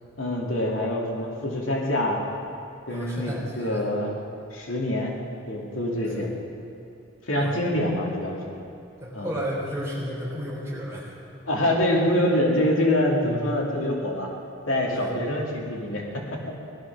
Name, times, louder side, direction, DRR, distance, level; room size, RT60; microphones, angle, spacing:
voice 1, 0.2-2.2 2.9-4.1 4.5-5.2 5.5-6.3 7.3-8.5 9.1-9.3 11.5-14.3 14.7-16.6, left 1 dB, 85° left, -1 dB, 2.4 m, -25 dB
voice 2, 2.9-3.9 6.0-6.3 7.4-7.6 9.0-11.2 14.9-15.2, equal, 15° right, -5 dB, 3.9 m, -33 dB
19.0 x 12.0 x 6.0 m, 2.7 s
head